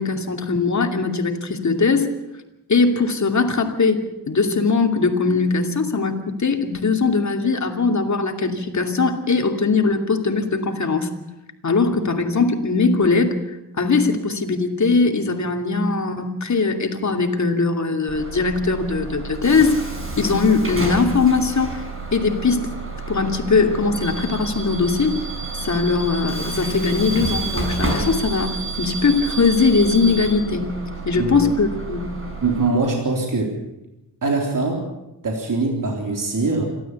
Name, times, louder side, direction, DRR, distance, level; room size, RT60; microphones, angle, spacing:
voice 1, 0.0-2.1 2.7-11.1 11.6-19.8 20.2-21.8 22.1-22.7 23.1-25.1 25.6-30.8 31.1-32.1, left 4 dB, 45° left, 4 dB, 2.6 m, -20 dB
Bus / Alarm, 18.1-32.7, right 3 dB, 35° right, 5.9 m, -30 dB
voice 2, 32.4-33.6 34.2-34.8 35.2-36.6, right 3 dB, 55° right, 1 dB, 3.8 m, -22 dB
27.5 x 13.0 x 8.3 m, 0.93 s
wide cardioid pair, 110°, 39 cm